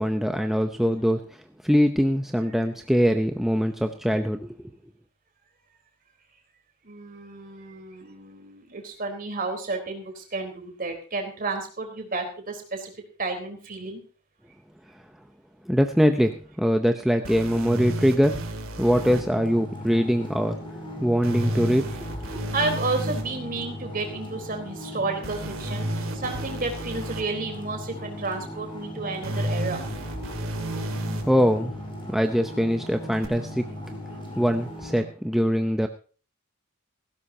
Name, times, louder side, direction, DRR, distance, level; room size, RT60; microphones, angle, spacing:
voice 1, 0.0-4.5 15.7-18.4 18.8-20.6 21.0-22.2 31.2-31.7 32.1-33.7 34.4-35.9, equal, ahead, 5 dB, 0.7 m, -23 dB
voice 2, 6.8-12.9 13.2-14.0 22.3-29.8, right 3 dB, 40° right, 4 dB, 3.8 m, -31 dB
sound 1, 17.2-19.2 21.2-23.2 25.2-27.2 29.2-31.2 33.2-33.3, right 1 dB, 60° right, 3.0 m, -31 dB
sound 2, 18.9-35.0, left 1 dB, 25° left, 5.7 m, -38 dB
18.0 x 16.0 x 2.8 m, 0.38 s
head